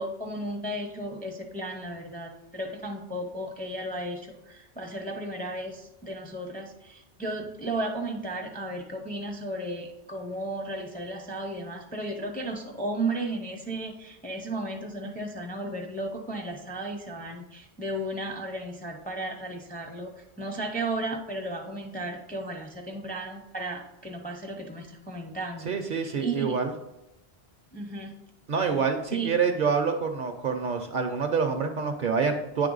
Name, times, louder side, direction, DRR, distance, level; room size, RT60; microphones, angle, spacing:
voice 1, 0.0-26.6 27.7-28.1 29.1-29.3, right 2 dB, 10° left, 2 dB, 0.5 m, -34 dB
voice 2, 25.7-26.7 28.5-32.7, right 5 dB, 55° right, 5 dB, 0.6 m, -27 dB
9.1 x 3.2 x 3.9 m, 0.88 s
omnidirectional pair, 1.1 m